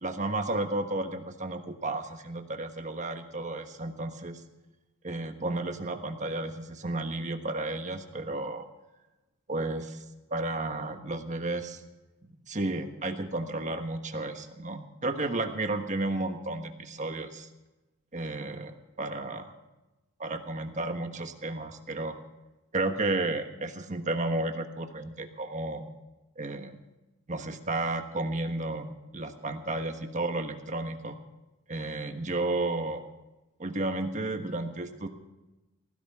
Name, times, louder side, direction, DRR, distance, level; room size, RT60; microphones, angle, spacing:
voice 1, 0.0-4.4 5.0-8.7 9.5-10.0 10.3-11.8 12.5-17.5 18.1-19.5 20.2-22.2 22.7-25.9 26.4-26.8 27.3-31.2 31.7-33.0 33.6-35.1, right 2 dB, 35° right, 7 dB, 1.3 m, -32 dB
18.5 x 15.5 x 3.7 m, 1.0 s
head